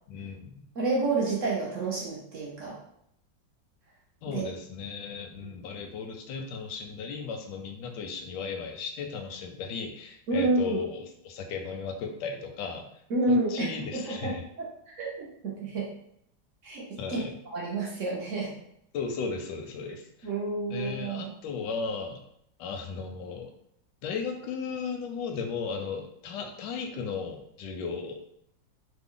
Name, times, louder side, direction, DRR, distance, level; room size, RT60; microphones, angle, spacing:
voice 1, 0.1-0.7 4.2-12.9 13.3-14.4 17.0-17.3 18.9-20.3 20.7-22.2 22.6-23.5 24.0-28.2, left 5 dB, 75° left, 4 dB, 1.1 m, -35 dB
voice 2, 0.7-2.8 4.3-4.4 10.3-10.8 13.1-14.3 14.9-15.9 16.6-16.8 17.1-17.2 17.5-18.5 20.2-21.3, right 2 dB, 65° right, -4 dB, 0.7 m, -29 dB
3.3 x 2.1 x 3.6 m, 0.72 s
omnidirectional pair, 2.1 m